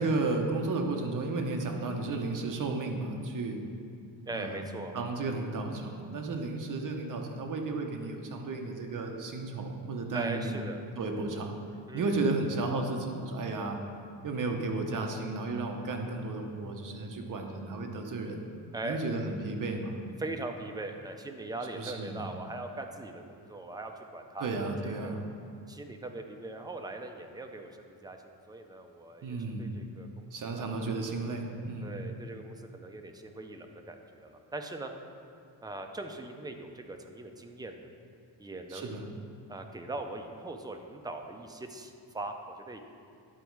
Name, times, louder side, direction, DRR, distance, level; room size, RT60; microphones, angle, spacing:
voice 1, 0.0-3.6 4.3-4.6 4.9-10.6 11.0-11.5 11.9-13.8 14.2-18.4 18.8-20.0 21.7-22.2 24.4-25.2 29.2-29.7 30.3-32.0 38.7-39.1, right 3 dB, 45° right, 2 dB, 0.9 m, -33 dB
voice 2, 4.3-5.0 10.1-10.8 11.9-12.2 18.7-19.0 20.2-24.5 24.8-25.1 25.7-30.7 31.8-34.9 35.6-37.9 38.4-38.9 39.5-42.8, right 2 dB, 10° right, 4 dB, 0.4 m, -41 dB
10.5 x 4.0 x 4.6 m, 2.4 s
cardioid pair, 140°, 42 cm